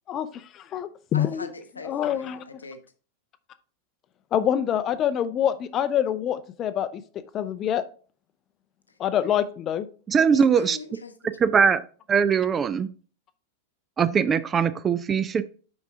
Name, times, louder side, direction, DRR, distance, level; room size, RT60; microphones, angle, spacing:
voice 1, 0.1-1.5 1.8-2.4 4.3-7.8 9.0-9.9, left 10 dB, 30° left, 13 dB, 0.5 m, -26 dB
voice 2, 1.1-2.8 10.3-11.3, left 3 dB, 75° left, 9 dB, 0.8 m, -41 dB
voice 3, 10.1-10.8 11.4-11.8 12.1-12.9 14.0-15.4, right 6 dB, 20° right, 15 dB, 0.4 m, -21 dB
6.0 x 5.5 x 3.5 m, 0.39 s
figure-of-eight pair, 90°, 0 cm